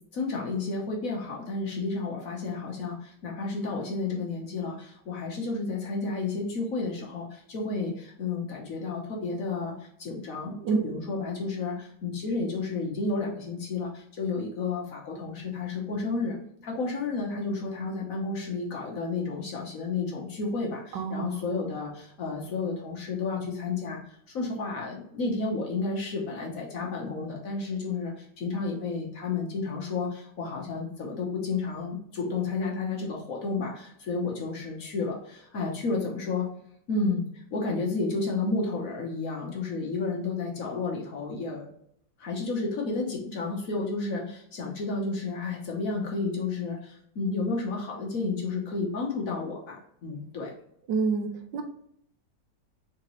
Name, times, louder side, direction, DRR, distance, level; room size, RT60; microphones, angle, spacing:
voice 1, 0.1-16.4 16.6-24.0 24.3-36.5 36.9-41.7 42.2-50.5, left 3 dB, 55° left, -1 dB, 1.2 m, -31 dB
voice 2, 20.9-21.4 50.9-51.6, right 5 dB, 75° right, 5 dB, 1.4 m, -28 dB
4.1 x 3.9 x 3.0 m, 0.70 s
omnidirectional pair, 2.0 m